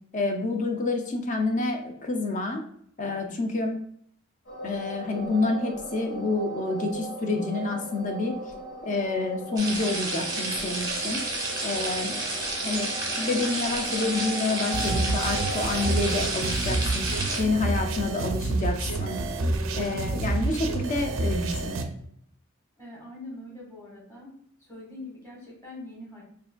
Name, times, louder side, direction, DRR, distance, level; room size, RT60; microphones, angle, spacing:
voice 1, 0.1-2.6 3.0-3.8 4.6-8.4 8.8-11.2 11.6-12.2 12.6-12.9 13.2-17.1 17.4-19.2 19.7-21.8, left 3 dB, 35° left, 3 dB, 0.5 m, -28 dB
sound 1, 4.5-16.2, right 1 dB, 65° left, 1.2 m, -38 dB
sound 2, 9.6-17.4, right 2 dB, 20° right, 0.6 m, -31 dB
sound 3, 14.7-21.8, right 2 dB, 65° right, 0.4 m, -28 dB
voice 2, 22.8-24.3 24.6-26.2, left 2 dB, 15° left, -6 dB, 1.4 m, -43 dB
4.6 x 2.5 x 2.2 m, 0.66 s
head